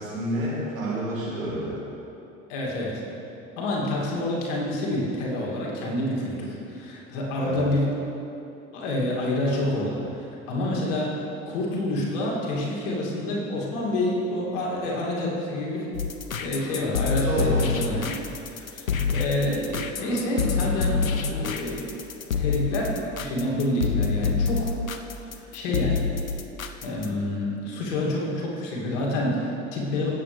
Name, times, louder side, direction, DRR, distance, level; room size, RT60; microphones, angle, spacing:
voice 1, 0.0-1.7 7.4-7.6 17.3-17.6, right 1 dB, 80° right, -6 dB, 2.8 m, -28 dB
voice 2, 2.5-3.0 3.6-7.9 8.7-10.0 10.5-15.9 16.4-18.2 18.5-21.9 22.3-24.7 25.5-26.0 26.8-30.1, left 1 dB, 60° left, -3 dB, 2.5 m, -28 dB
sound 1, 15.9-27.2, left 5 dB, 85° left, 0.6 m, -27 dB
17.5 x 7.8 x 3.4 m, 2.8 s
figure-of-eight pair, 65°, 40 cm